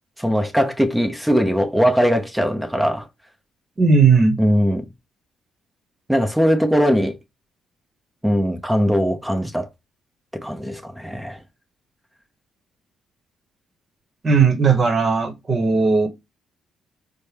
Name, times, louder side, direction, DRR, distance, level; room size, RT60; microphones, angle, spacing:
voice 1, 0.2-3.1 4.4-4.9 6.1-7.2 8.2-9.7 10.3-11.4, equal, 5° right, 0.8 m, -20 dB
voice 2, 3.8-4.4 14.2-16.1, right 5 dB, 35° right, 1.1 m, -16 dB
4.3 x 2.1 x 3.3 m
cardioid pair, 90°, 0 cm